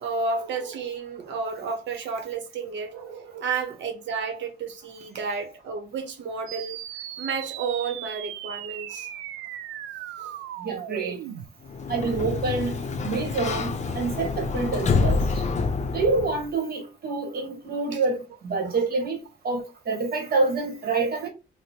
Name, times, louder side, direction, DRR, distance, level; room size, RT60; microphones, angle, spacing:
voice 1, 0.0-6.8 7.2-9.1 10.2-10.4 17.9-18.0 18.6-18.8, right 5 dB, 65° right, 0.8 m, -31 dB
sound 1, 6.5-11.5, right 11 dB, 90° right, 0.4 m, -37 dB
voice 2, 10.6-11.4 11.9-12.8 13.0-15.4 15.9-21.3, right 3 dB, 50° right, 1.1 m, -27 dB
Sliding door, 11.6-16.5, left 4 dB, 35° left, 0.6 m, -27 dB
2.7 x 2.0 x 4.0 m
cardioid pair, 90°, 20 cm